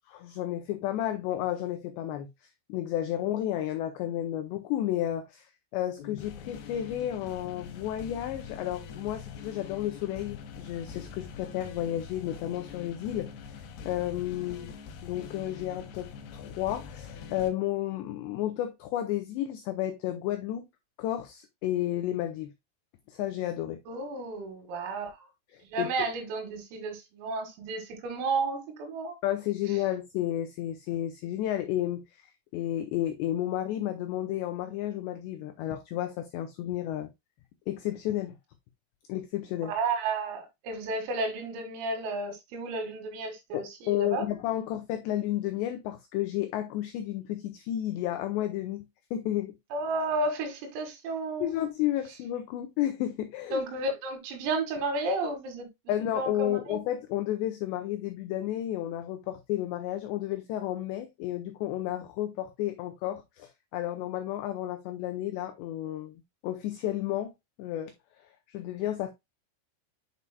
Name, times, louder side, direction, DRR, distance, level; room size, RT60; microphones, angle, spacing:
voice 1, 0.1-2.3 2.7-5.5 5.7-14.7 15.0-20.7 21.0-22.5 23.1-23.8 25.5-25.9 29.2-37.1 37.7-38.3 39.1-39.7 43.5-49.6 51.4-53.6 55.9-66.1 66.4-67.3 67.6-67.9 68.5-69.1, left 12 dB, 85° left, 2.4 m, -32 dB
Attack of the Robo Spider, 6.0-17.5, left 6 dB, 70° left, 2.8 m, -44 dB
voice 2, 14.4-14.7 23.9-25.3 25.6-29.2 39.7-44.3 49.7-51.5 53.5-55.7 56.2-56.8, right 3 dB, 85° right, 4.6 m, -32 dB
9.6 x 5.5 x 2.2 m
omnidirectional pair, 5.8 m